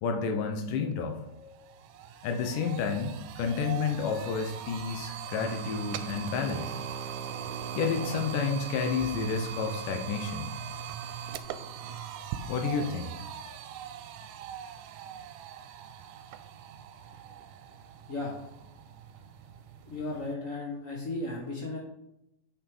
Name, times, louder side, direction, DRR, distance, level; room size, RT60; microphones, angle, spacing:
voice 1, 0.0-1.8 2.2-6.8 7.8-10.7 12.5-13.1 13.5-13.6, left 5 dB, 90° left, 4 dB, 2.6 m, -31 dB
sound 1, 0.9-1.0 1.3-20.3, right 8 dB, 85° right, 2.2 m, -40 dB
voice 2, 19.8-21.8, left 2 dB, 55° left, -2 dB, 0.9 m, -35 dB
8.6 x 6.0 x 5.4 m, 0.84 s
omnidirectional pair, 3.7 m